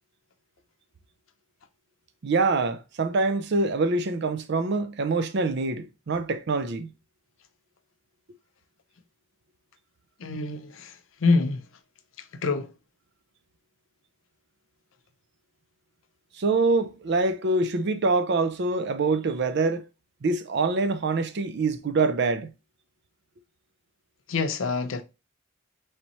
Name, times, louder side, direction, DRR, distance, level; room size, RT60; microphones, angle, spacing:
voice 1, 2.2-6.9 16.4-19.8 20.2-22.5, right 3 dB, 60° right, 0.5 m, -25 dB
voice 2, 10.2-11.7 12.4-12.7 24.3-25.0, left 3 dB, 80° left, 0.6 m, -26 dB
4.1 x 3.3 x 2.9 m
head